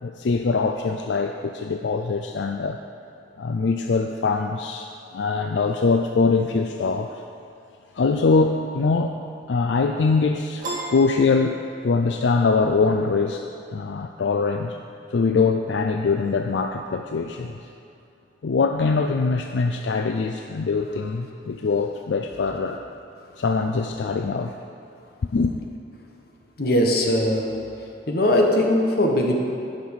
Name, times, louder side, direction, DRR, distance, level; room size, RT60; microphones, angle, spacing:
voice 1, 0.0-2.8 3.4-4.9 5.1-7.1 8.0-9.1 9.5-11.6 11.8-13.4 13.7-14.8 15.1-17.5 18.4-22.8 23.4-24.5 25.3-25.6, left 4 dB, 80° left, 5 dB, 0.4 m, -23 dB
Piano, 10.6-12.2, right 2 dB, 50° right, 1.9 m, -34 dB
voice 2, 26.6-27.4 28.1-29.3, left 1 dB, 60° left, 0 dB, 1.3 m, -20 dB
10.5 x 6.0 x 6.4 m, 2.7 s
head